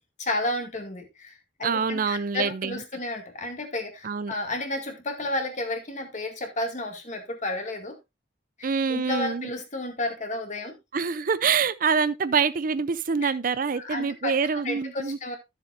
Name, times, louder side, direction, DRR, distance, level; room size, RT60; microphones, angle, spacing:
voice 1, 0.0-1.3 1.6-8.0 8.6-10.8 13.2-13.3 13.8-14.3 14.6-15.4, left 2 dB, 45° left, 2.2 m, -32 dB
voice 2, 1.6-2.8 4.0-4.3 8.6-9.5 10.9-15.2, right 5 dB, 50° right, 0.5 m, -25 dB
13.0 x 7.2 x 2.6 m
head